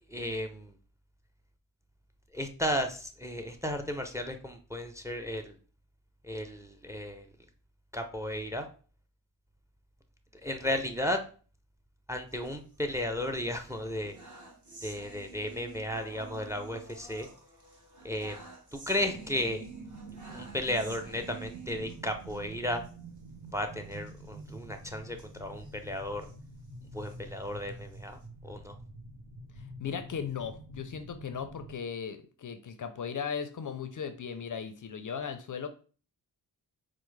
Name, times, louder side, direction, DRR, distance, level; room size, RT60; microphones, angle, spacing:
voice 1, 0.1-0.7 2.3-5.5 6.2-7.3 7.9-8.7 10.4-11.2 12.1-14.2 14.8-17.3 18.0-18.4 18.7-19.7 20.3-22.8 23.5-26.3 26.9-28.2 28.4-28.7, left 1 dB, 5° right, 7 dB, 0.5 m, -34 dB
sound 1, 12.3-13.2 13.6-22.4 22.8-22.9 23.2-23.3 23.8-26.4 26.9-28.3, right 3 dB, 45° right, 1.1 m, -51 dB
sound 2, 19.0-31.8, right 2 dB, 80° right, 0.8 m, -47 dB
voice 2, 29.6-35.7, left 7 dB, 45° left, 9 dB, 0.5 m, -37 dB
4.5 x 2.0 x 3.1 m, 0.39 s
cardioid pair, 45°, 43 cm